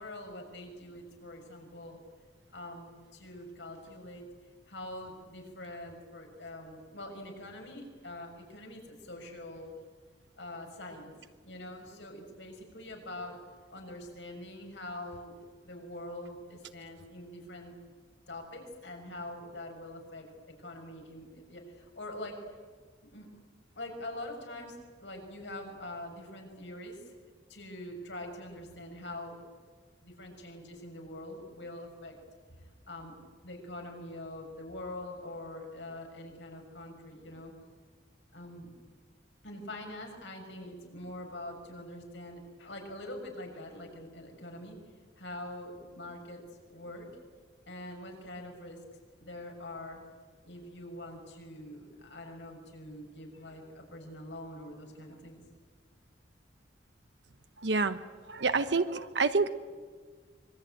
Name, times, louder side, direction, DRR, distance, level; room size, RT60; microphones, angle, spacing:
voice 1, 0.0-2.0 2.5-4.2 4.7-9.7 10.4-11.1 11.4-13.4 13.7-15.3 15.6-17.7 18.3-20.3 20.6-22.3 23.1-23.3 23.7-27.1 27.5-29.3 30.0-32.1 32.9-33.1 33.4-37.5 38.3-38.7 39.4-44.8 45.2-47.1 47.7-48.8 49.2-50.0 50.4-55.3, left 1 dB, 80° left, 2 dB, 6.6 m, -44 dB
voice 2, 57.6-58.0 58.3-59.5, right 4 dB, 70° right, 10 dB, 1.1 m, -28 dB
25.0 x 23.0 x 9.3 m, 1.5 s
head